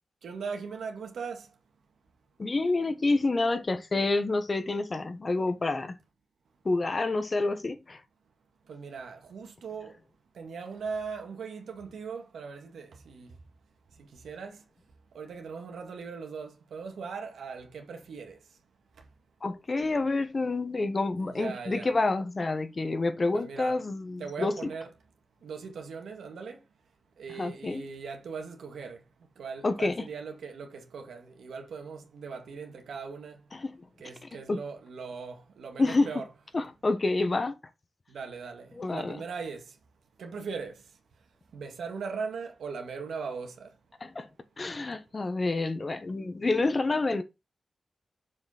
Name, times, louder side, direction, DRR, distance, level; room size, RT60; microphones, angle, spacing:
voice 1, 0.2-1.5 8.7-9.9 10.4-13.3 14.2-14.6 15.1-18.4 21.2-21.9 23.3-23.8 24.2-24.9 25.4-26.6 27.2-29.0 29.4-33.4 34.0-36.2 38.1-39.6 40.2-40.7 41.5-43.7, right 5 dB, 90° right, 2.0 m, -39 dB
voice 2, 2.4-6.0 6.6-8.0 19.4-24.7 27.3-27.8 29.6-30.1 33.5-33.8 34.2-34.6 35.8-36.2 36.5-37.6 38.7-39.2 44.0-44.3 44.6-47.2, left 3 dB, 50° left, 1.3 m, -28 dB
7.2 x 5.1 x 4.2 m
cardioid pair, 45°, 0 cm